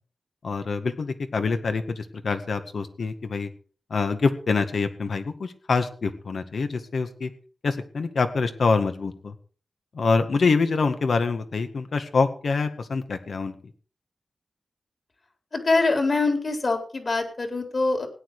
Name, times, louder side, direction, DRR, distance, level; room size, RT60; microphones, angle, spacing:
voice 1, 0.4-3.5 3.9-7.3 7.6-9.3 9.9-13.6, left 4 dB, 75° left, 8 dB, 1.8 m, -25 dB
voice 2, 15.5-18.1, left 3 dB, 50° left, 5 dB, 4.1 m, -24 dB
17.0 x 10.0 x 5.0 m, 0.41 s
wide cardioid pair, 75°, 0 cm